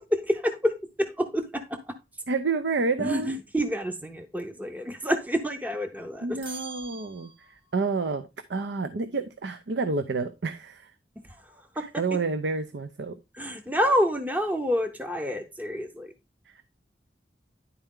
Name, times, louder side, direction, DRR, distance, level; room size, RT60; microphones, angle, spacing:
voice 1, 0.0-2.2 3.0-6.4 11.2-12.2 13.3-16.1, equal, 10° right, 0.6 m, -28 dB
voice 2, 2.3-3.3 6.2-10.9 12.0-13.2, right 4 dB, 80° right, 0.6 m, -29 dB
sound 1, 6.4-7.8, right 3 dB, 30° right, 1.3 m, -43 dB
10.5 x 4.4 x 3.7 m
head